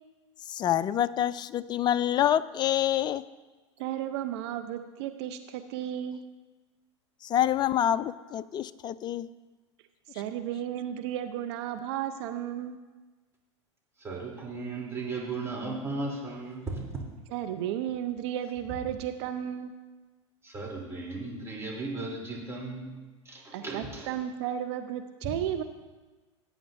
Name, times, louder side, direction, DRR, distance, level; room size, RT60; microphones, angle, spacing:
voice 1, 0.5-3.2 7.2-9.3, left 11 dB, 30° left, 15 dB, 0.4 m, -27 dB
voice 2, 3.8-6.2 10.1-12.8 17.3-19.7 23.5-25.6, right 10 dB, 60° right, 8 dB, 0.7 m, -33 dB
voice 3, 14.0-16.9 20.4-24.1, right 3 dB, 15° right, -3 dB, 3.3 m, -36 dB
16.5 x 9.2 x 2.7 m, 1.2 s
hypercardioid pair, 100°, 16 cm